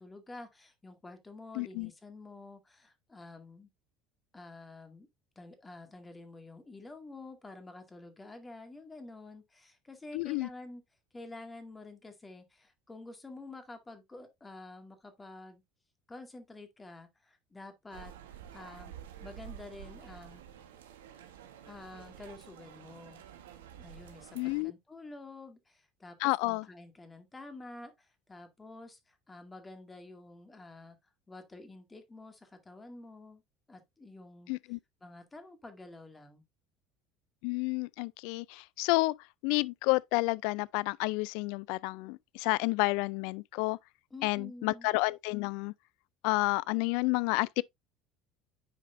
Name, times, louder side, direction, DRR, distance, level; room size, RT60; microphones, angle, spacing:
voice 1, 0.0-3.7 4.3-5.1 5.4-10.8 11.1-15.6 16.1-18.1 18.5-18.9 19.2-20.4 21.7-23.2 23.8-31.0 31.3-33.4 33.7-36.4 44.1-44.9, left 2 dB, 20° left, 2.1 m, -49 dB
voice 2, 1.6-1.9 10.1-10.5 24.4-24.7 26.2-26.6 34.5-34.8 37.4-39.1 39.4-43.8 44.2-45.7 46.2-47.6, left 24 dB, 70° left, 0.3 m, -30 dB
sound 1, 17.9-24.6, right 10 dB, 90° right, 1.2 m, -50 dB
9.4 x 5.0 x 2.6 m
hypercardioid pair, 85°, 0 cm